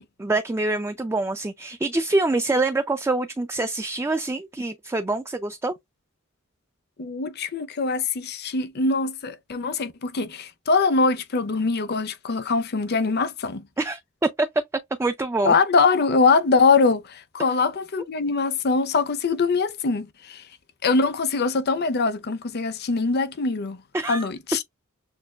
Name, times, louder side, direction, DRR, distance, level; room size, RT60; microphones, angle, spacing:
voice 1, 0.2-5.7 13.8-14.0 14.4-14.5 15.0-15.5 23.9-24.3, right 2 dB, 15° right, 0.3 m, -25 dB
voice 2, 7.0-13.7 15.4-20.4 20.8-23.8 24.1-24.6, left 4 dB, 50° left, 0.6 m, -23 dB
6.5 x 2.3 x 2.2 m
head